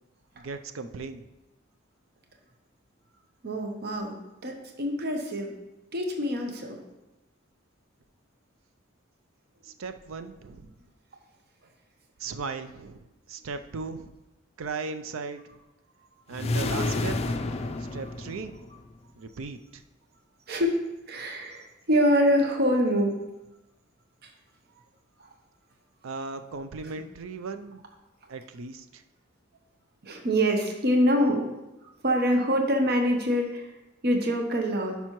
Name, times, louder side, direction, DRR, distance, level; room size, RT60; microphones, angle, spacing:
voice 1, 0.4-1.3 9.6-10.7 12.2-14.1 14.6-15.4 16.3-17.5 17.8-18.6 19.2-19.8 26.0-27.8 28.3-29.0, right 4 dB, 75° right, 9 dB, 0.5 m, -37 dB
voice 2, 3.4-5.5 5.9-6.8 20.5-20.8 21.1-23.2 24.2-24.3 25.2-25.3 26.8-26.9 30.0-31.5 32.0-33.7 34.0-35.0, equal, 50° right, 3 dB, 0.8 m, -25 dB
sound 1, 16.3-18.9, left 2 dB, 30° left, 0.4 m, -30 dB
10.5 x 5.5 x 3.0 m, 0.99 s
head